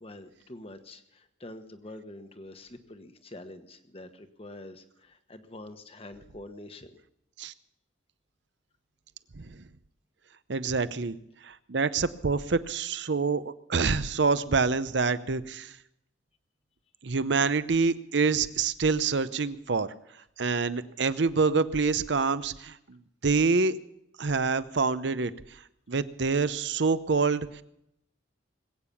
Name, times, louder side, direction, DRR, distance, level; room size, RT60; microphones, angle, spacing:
voice 1, 0.0-6.9, left 1 dB, 30° left, 8 dB, 1.2 m, -46 dB
voice 2, 10.5-11.2 11.4-15.7 17.0-19.9 20.4-23.8 24.2-25.3 25.9-27.6, right 4 dB, 65° right, 14 dB, 0.7 m, -26 dB
20.5 x 8.9 x 7.1 m, 0.78 s
head